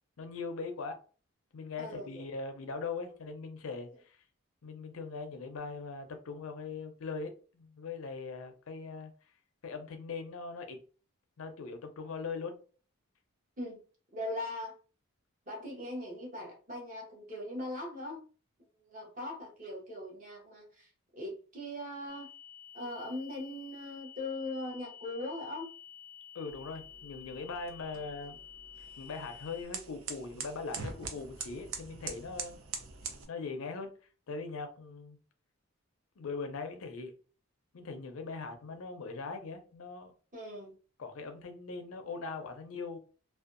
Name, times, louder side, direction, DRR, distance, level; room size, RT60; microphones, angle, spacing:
voice 1, 0.2-1.0 1.5-4.2 4.6-9.1 9.6-10.8 11.4-12.5 26.3-28.4 29.0-32.6 33.3-33.9 34.3-35.2 36.2-37.1 37.7-40.1 41.0-43.0, left 4 dB, 70° left, 0.5 m, -40 dB
voice 2, 1.8-2.2 13.6-13.8 14.1-14.8 15.5-18.2 18.8-22.3 22.7-25.7 40.3-40.8, left 1 dB, 35° right, 1.0 m, -40 dB
sound 1, 22.1-29.6, left 8 dB, 15° left, 0.5 m, -51 dB
sound 2, 26.5-33.2, right 5 dB, 70° right, 0.5 m, -44 dB
2.6 x 2.2 x 2.5 m
head